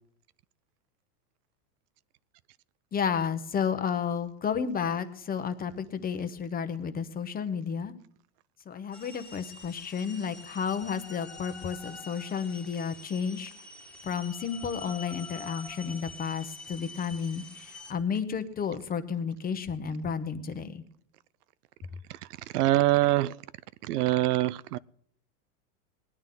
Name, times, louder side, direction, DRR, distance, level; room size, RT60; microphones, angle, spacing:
voice 1, 2.9-7.9 8.7-13.5 14.0-20.8, left 6 dB, 20° left, 1.0 m, -32 dB
sound 1, 8.9-17.9, left 3 dB, ahead, 2.0 m, -46 dB
voice 2, 22.5-23.3 23.9-24.8, right 16 dB, 85° right, 0.6 m, -24 dB
20.0 x 11.0 x 3.9 m
supercardioid pair, 135°, 45 cm